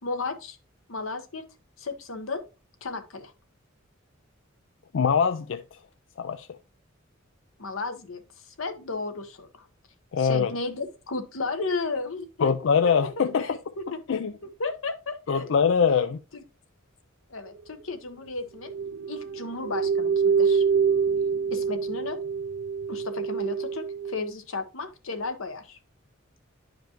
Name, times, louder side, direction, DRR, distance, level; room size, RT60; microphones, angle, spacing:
voice 1, 0.0-0.6 0.9-1.4 1.8-2.4 2.8-3.3 7.6-9.7 10.2-12.5 12.8-12.9 13.4-14.2 14.4-15.5 17.3-18.7 19.1-20.6 21.5-22.2 22.9-25.8, left 3 dB, 85° left, 1.1 m, -34 dB
voice 2, 4.9-5.6 6.2-6.5 10.1-10.5 12.4-13.6 14.1-14.3 15.3-16.2, left 6 dB, 65° left, 0.4 m, -23 dB
sound 1, 18.7-24.3, right 6 dB, 80° right, 0.3 m, -26 dB
10.5 x 5.1 x 2.9 m
head